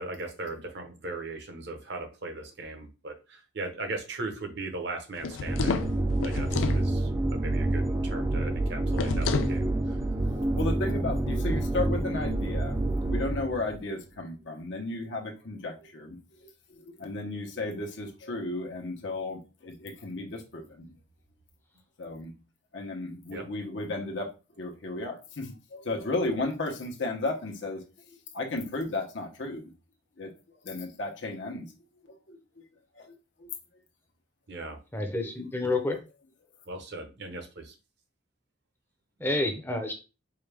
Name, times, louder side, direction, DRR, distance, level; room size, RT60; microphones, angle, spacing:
voice 1, 0.0-5.9 6.2-10.1 23.3-23.5 34.5-34.8 36.7-37.7, right 2 dB, 60° right, 4 dB, 0.9 m, -38 dB
sound 1, 5.2-6.8 8.9-9.6, left 5 dB, 85° left, 0.4 m, -30 dB
sound 2, 5.5-13.8, right 2 dB, 15° right, 0.3 m, -28 dB
voice 2, 10.3-16.5 16.8-20.9 22.0-22.3 22.7-24.3 24.6-27.8 28.3-29.7 30.2-30.3 30.6-31.6 32.3-32.4 33.0-33.1 33.4-33.5, left 2 dB, 70° left, 0 dB, 0.9 m, -34 dB
voice 3, 34.9-36.0 39.2-39.9, left 2 dB, 10° left, 4 dB, 0.7 m, -29 dB
4.8 x 2.2 x 3.3 m, 0.31 s
head